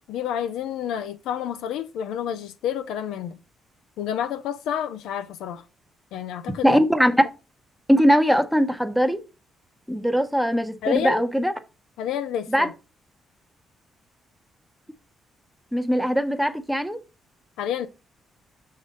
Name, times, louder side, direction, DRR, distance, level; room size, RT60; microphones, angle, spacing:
voice 1, 0.0-3.4 4.0-5.6 6.1-6.8 10.8-11.2 12.0-12.7 17.6-17.9, left 9 dB, 90° left, 0.6 m, -29 dB
voice 2, 6.6-7.3 7.9-9.2 9.9-11.5 12.5-12.7 15.7-17.0, equal, ahead, 0.9 m, -20 dB
6.2 x 3.8 x 5.3 m
cardioid pair, 90°, 0 cm